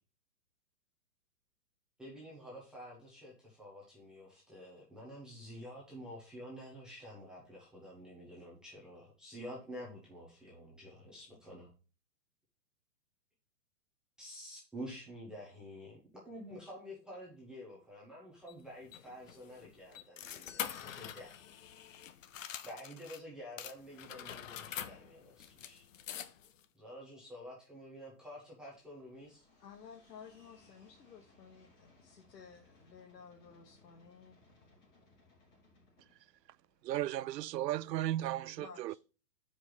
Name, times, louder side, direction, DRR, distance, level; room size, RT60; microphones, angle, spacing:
voice 1, 2.0-11.7 14.2-21.3 22.6-25.8 26.7-29.5, equal, ahead, 0.8 m, -49 dB
sound 1, 18.5-23.2 23.6-26.6, left 9 dB, 50° left, 0.7 m, -45 dB
sound 2, 28.6-37.4, left 2 dB, 35° left, 3.5 m, -66 dB
voice 2, 29.6-34.4 38.5-39.0, left 6 dB, 75° left, 1.4 m, -55 dB
voice 3, 36.8-39.0, right 13 dB, 85° right, 0.5 m, -35 dB
5.4 x 5.1 x 6.1 m
hypercardioid pair, 165°, 49 cm